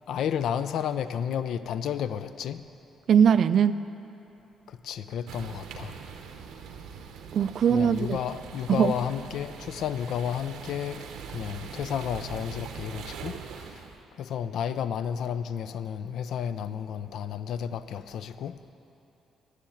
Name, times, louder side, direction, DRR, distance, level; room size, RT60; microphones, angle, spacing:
voice 1, 0.1-2.6 4.7-6.0 7.7-13.9 14.2-18.6, left 8 dB, 75° left, 12 dB, 0.4 m, -32 dB
voice 2, 3.1-3.8 7.3-8.2 8.7-8.9, right 8 dB, 60° right, 14 dB, 0.3 m, -21 dB
sound 1, 5.3-14.0, right 6 dB, 85° right, 0.8 m, -42 dB
10.0 x 6.5 x 8.6 m, 3.0 s
cardioid pair, 90°, 0 cm